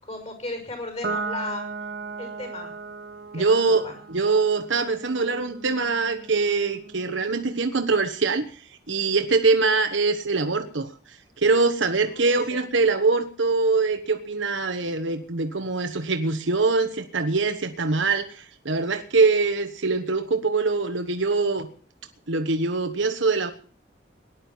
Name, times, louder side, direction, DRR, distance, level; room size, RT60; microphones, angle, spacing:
voice 1, 0.0-1.6 2.2-2.8 3.3-4.0 12.1-12.6, left 2 dB, 35° left, 5 dB, 6.1 m, -36 dB
Piano, 1.0-7.7, right 4 dB, 50° right, 1.5 m, -37 dB
voice 2, 3.3-21.7 22.3-23.5, right 3 dB, 75° right, 7 dB, 1.2 m, -23 dB
18.0 x 11.0 x 5.6 m, 0.43 s
head